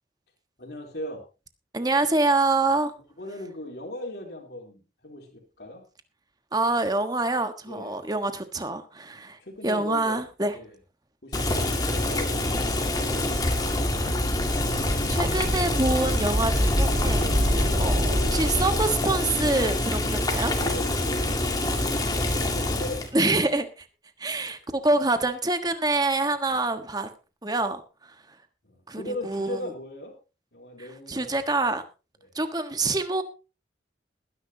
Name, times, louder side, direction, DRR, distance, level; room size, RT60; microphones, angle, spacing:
voice 1, 0.6-1.2 3.0-5.8 7.6-8.0 9.1-10.2 10.5-10.8 11.2-14.2 20.6-23.1 26.5-26.7 28.6-30.2 30.5-31.4 32.2-32.3, left 1 dB, 65° left, 1 dB, 3.6 m, -39 dB
voice 2, 1.7-2.9 6.5-9.4 9.6-10.5 15.1-20.5 23.1-23.7 24.2-27.1 27.4-27.8 28.9-29.6 31.1-31.8 32.3-33.2, right 2 dB, 20° right, 8 dB, 1.4 m, -26 dB
Boiling, 11.3-23.1, left 1 dB, 20° left, 2.2 m, -26 dB
sound 1, 13.4-19.7, equal, 90° right, 7.3 m, -27 dB
21.0 x 10.5 x 2.9 m, 0.30 s
head